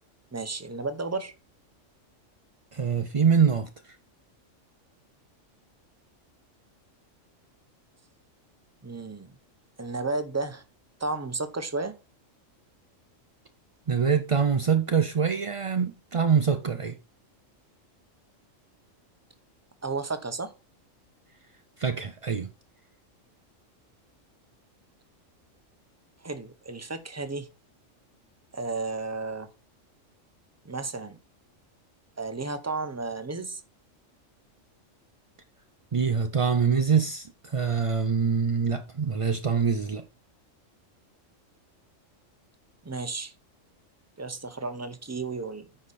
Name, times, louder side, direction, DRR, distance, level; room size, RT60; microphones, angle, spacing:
voice 1, 0.3-1.3 8.8-9.3 9.8-10.6 11.0-11.9 19.8-20.5 26.2-27.5 28.5-29.5 30.6-31.2 32.2-33.6 42.8-43.3 44.2-45.7, right 3 dB, 15° right, 0.6 m, -33 dB
voice 2, 2.7-4.0 13.9-17.0 21.8-22.5 35.9-40.0, right 6 dB, 55° right, 0.3 m, -24 dB
9.5 x 5.0 x 4.1 m
omnidirectional pair, 1.3 m